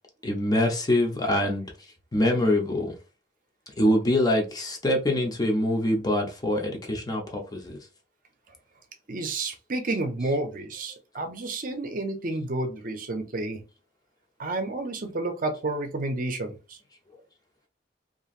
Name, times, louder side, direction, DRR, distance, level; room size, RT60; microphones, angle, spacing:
voice 1, 0.2-1.7 2.1-2.9 3.8-7.8 10.2-10.3, left 1 dB, 20° left, 0.6 m, -24 dB
voice 2, 9.1-13.6 14.4-16.8, right 2 dB, 45° right, 0.6 m, -30 dB
2.9 x 2.5 x 2.4 m
head